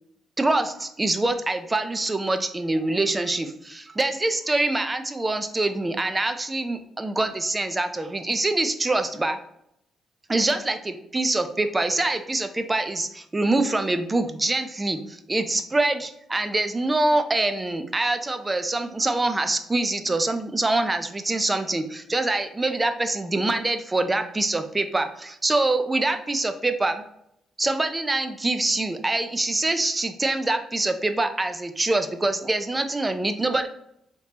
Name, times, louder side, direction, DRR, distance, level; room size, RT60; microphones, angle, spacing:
voice 1, 0.4-9.4 10.3-27.0 27.6-33.7, right 2 dB, 20° right, 8 dB, 0.4 m, -25 dB
3.4 x 2.8 x 2.8 m, 0.76 s
cardioid pair, 90°, 0 cm